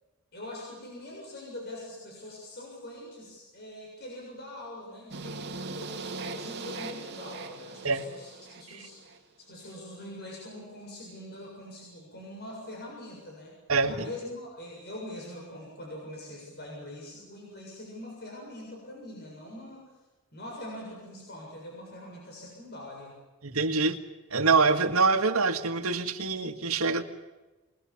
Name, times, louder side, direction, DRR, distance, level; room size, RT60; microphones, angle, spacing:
voice 1, 0.3-13.5 13.9-19.8 20.3-23.1, left 1 dB, 50° left, -2 dB, 7.3 m, -43 dB
sound 1, 5.1-9.2, right 3 dB, 50° right, 2.5 m, -40 dB
voice 2, 13.7-14.1 23.4-24.0 24.3-27.0, right 4 dB, 90° right, 8 dB, 1.9 m, -25 dB
27.5 x 21.5 x 7.3 m, 1.1 s
head